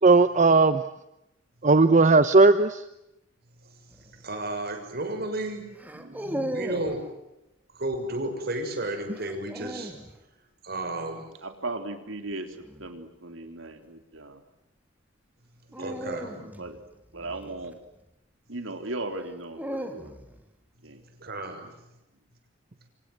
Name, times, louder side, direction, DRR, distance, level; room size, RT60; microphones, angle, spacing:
voice 1, 0.0-0.8 1.6-2.8 6.4-6.5, right 3 dB, 40° right, 11 dB, 1.0 m, -17 dB
voice 2, 3.6-5.6 6.5-7.1 7.7-9.9 10.6-11.3 15.8-16.3 21.2-21.8, right 1 dB, 55° right, 6 dB, 6.6 m, -33 dB
sound 1, 3.9-4.2 5.8-7.0 9.1-10.1 12.5-12.9 15.7-18.1 19.1-20.4, equal, 10° right, 3.1 m, -37 dB
voice 3, 11.4-14.4 15.7-16.8 17.1-17.8 18.5-20.1 20.8-21.0, right 2 dB, 90° right, 6 dB, 3.8 m, -37 dB
29.5 x 25.5 x 7.9 m, 0.87 s
head